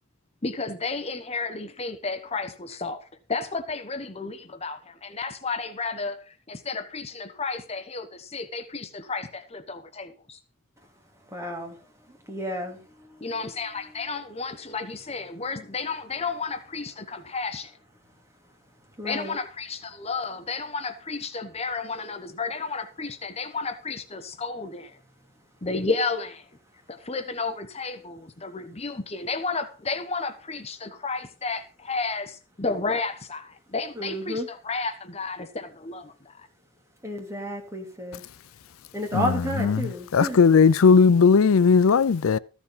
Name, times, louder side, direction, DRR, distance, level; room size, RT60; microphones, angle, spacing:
voice 1, 0.4-3.0 3.3-10.4 13.2-17.7 19.0-25.0 25.6-26.5 26.9-36.5, left 4 dB, 30° left, 1.0 m, -32 dB
voice 2, 11.3-11.8 12.3-12.8 19.0-19.4 34.0-34.5 37.0-38.2 38.9-40.4, equal, 15° right, 2.7 m, -31 dB
voice 3, 40.1-42.4, left 5 dB, 80° left, 0.5 m, -17 dB
14.0 x 7.2 x 5.5 m
head